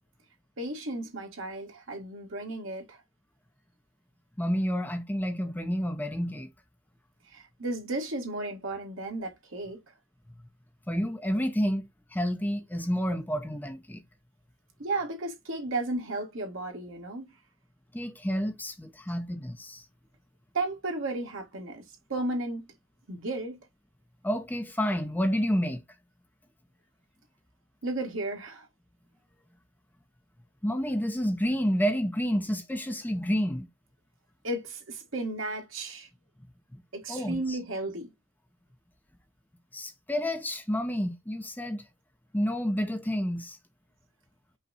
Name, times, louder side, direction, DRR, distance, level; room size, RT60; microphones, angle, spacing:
voice 1, 0.6-3.0 7.3-9.8 14.8-17.3 20.5-21.8 22.1-22.7 23.1-23.6 27.8-28.7 34.4-36.1 36.9-38.1, right 2 dB, 65° right, 1.5 m, -34 dB
voice 2, 4.4-6.5 10.9-11.8 12.1-14.0 17.9-19.8 24.2-25.8 30.6-33.7 36.7-36.8 37.1-37.6 39.7-41.8 42.3-43.6, equal, 10° left, 0.5 m, -29 dB
5.5 x 2.2 x 3.9 m
head